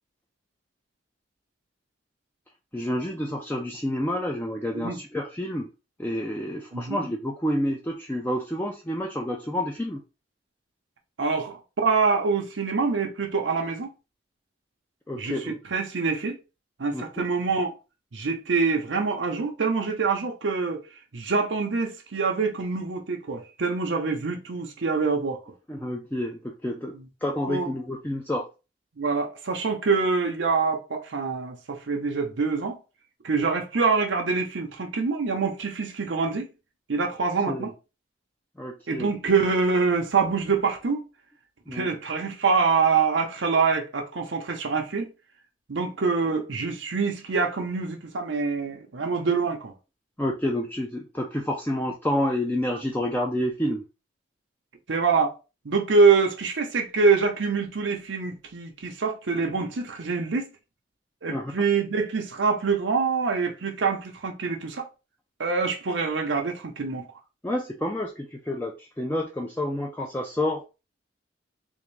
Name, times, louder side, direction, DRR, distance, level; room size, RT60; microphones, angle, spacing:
voice 1, 2.7-5.7 6.0-10.0 15.1-15.6 16.9-17.3 25.7-28.5 37.5-37.7 38.6-39.1 41.7-41.9 50.2-53.8 61.3-61.5 67.4-70.8, left 1 dB, 10° left, 0.4 m, -29 dB
voice 2, 6.7-7.1 11.2-13.9 15.2-16.4 16.8-17.7 18.1-20.8 21.1-25.4 27.5-27.7 29.0-32.8 33.2-36.5 36.9-37.7 38.9-41.0 41.7-45.1 45.7-49.7 54.9-55.3 55.6-60.5 61.2-64.9 65.4-67.0, right 4 dB, 90° right, 0.7 m, -25 dB
3.6 x 2.6 x 3.2 m
head